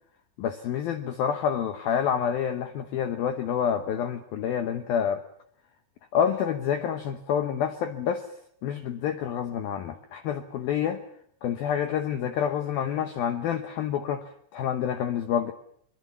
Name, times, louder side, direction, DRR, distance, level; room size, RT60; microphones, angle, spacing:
voice 1, 0.4-5.2 6.1-8.3 8.6-11.0 11.4-15.5, left 8 dB, 75° left, 8 dB, 2.2 m, -28 dB
23.5 x 23.0 x 7.2 m, 0.66 s
omnidirectional pair, 5.8 m